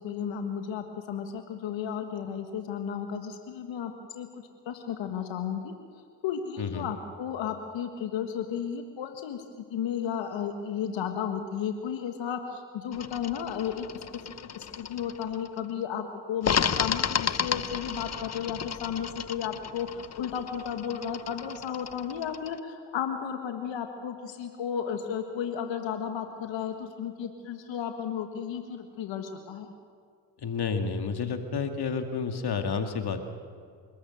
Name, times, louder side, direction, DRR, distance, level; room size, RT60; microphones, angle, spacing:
voice 1, 0.0-5.7 6.2-14.2 14.5-29.7, left 8 dB, 80° left, 6 dB, 1.7 m, -34 dB
sound 1, 12.9-15.6 16.4-22.6, left 7 dB, 35° left, 0.8 m, -33 dB
voice 2, 30.4-33.2, left 5 dB, 60° left, 6 dB, 2.2 m, -30 dB
27.0 x 13.0 x 7.9 m, 2.2 s
supercardioid pair, 50°, 44 cm